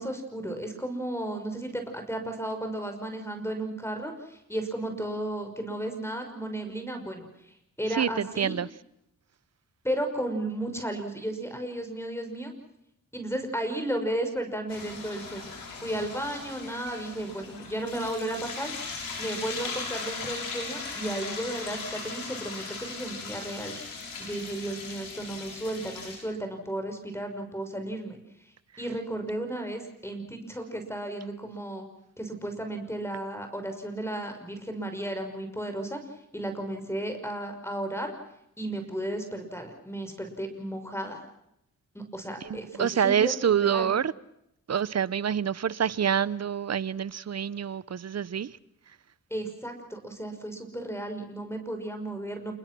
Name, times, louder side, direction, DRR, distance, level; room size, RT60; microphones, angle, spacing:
voice 1, 0.0-8.5 9.8-12.5 13.1-18.7 19.2-28.2 28.4-31.9 32.2-38.1 38.6-41.2 41.9-43.9 49.3-52.5, right 1 dB, 10° left, 5.8 m, -34 dB
voice 2, 7.9-8.7 42.4-44.1 44.7-48.6, right 8 dB, 50° right, 0.9 m, -27 dB
sound 1, 14.7-26.2, left 4 dB, 90° left, 7.1 m, -38 dB
29.0 x 21.0 x 6.2 m
cardioid pair, 60°, 33 cm